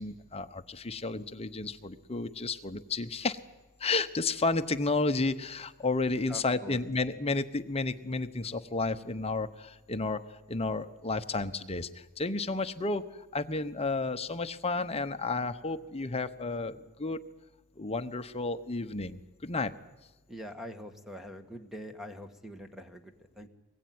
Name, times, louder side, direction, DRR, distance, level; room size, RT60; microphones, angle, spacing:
voice 1, 0.0-3.4 3.8-17.2 17.8-19.7, left 3 dB, 25° left, 9 dB, 0.9 m, -32 dB
voice 2, 6.3-6.8 20.3-23.5, equal, ahead, 7 dB, 1.6 m, -44 dB
24.5 x 20.5 x 9.5 m, 1.1 s
head